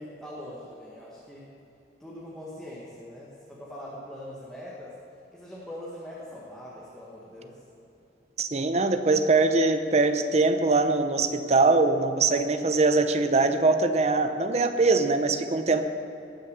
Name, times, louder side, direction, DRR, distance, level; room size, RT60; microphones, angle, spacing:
voice 1, 0.0-1.5 2.0-5.0 5.3-7.6, left 1 dB, 5° left, -6 dB, 1.6 m, -42 dB
voice 2, 8.4-15.8, right 3 dB, 40° right, 8 dB, 0.7 m, -22 dB
19.0 x 6.6 x 6.6 m, 2.8 s
head